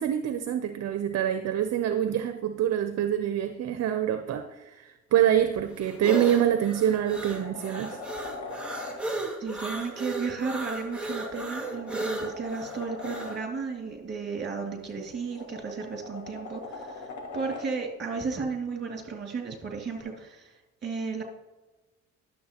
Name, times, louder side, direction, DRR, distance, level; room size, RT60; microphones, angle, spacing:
voice 1, 0.0-8.0, right 10 dB, 60° right, 8 dB, 0.6 m, -26 dB
sound 1, 5.1-13.4, right 2 dB, 5° right, 1.9 m, -35 dB
sound 2, 6.7-9.0 10.7-13.4 14.9-17.7 20.0-20.1, left 3 dB, 70° left, 1.8 m, -41 dB
voice 2, 9.4-21.2, right 4 dB, 35° right, 2 dB, 2.3 m, -34 dB
11.5 x 7.1 x 2.9 m, 1.1 s
cardioid pair, 90°, 30 cm